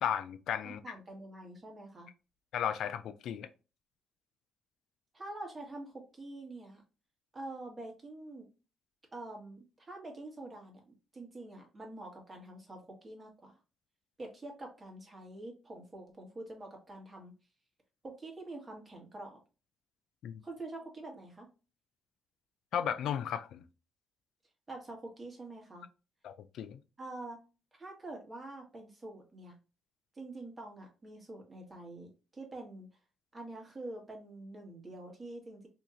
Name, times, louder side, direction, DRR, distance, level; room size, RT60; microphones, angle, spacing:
voice 1, 0.0-0.8 2.5-3.5 20.2-20.4 22.7-23.6 26.2-26.8, left 9 dB, 75° left, 0.3 m, -34 dB
voice 2, 0.6-2.1 5.1-6.8 7.3-8.5 9.1-13.5 14.2-17.3 18.0-19.4 20.4-21.5 24.7-25.9 27.0-27.4 27.7-29.6 30.1-32.9 33.3-35.7, right 2 dB, 25° right, 1.5 m, -46 dB
2.8 x 2.8 x 3.7 m
cardioid pair, 90°, 0 cm